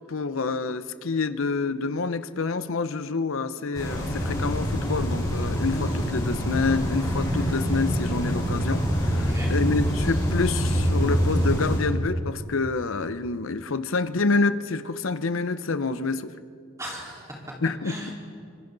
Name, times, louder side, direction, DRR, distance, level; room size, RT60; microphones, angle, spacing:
voice 1, 0.1-16.3 17.6-18.1, left 4 dB, 70° left, 12 dB, 0.7 m, -27 dB
sound 1, 3.7-11.8, equal, 20° left, 4.7 m, -25 dB
voice 2, 9.1-9.5 16.8-17.6 17.8-18.1, equal, 15° right, -4 dB, 4.2 m, -37 dB
26.0 x 26.0 x 4.0 m, 2.4 s
head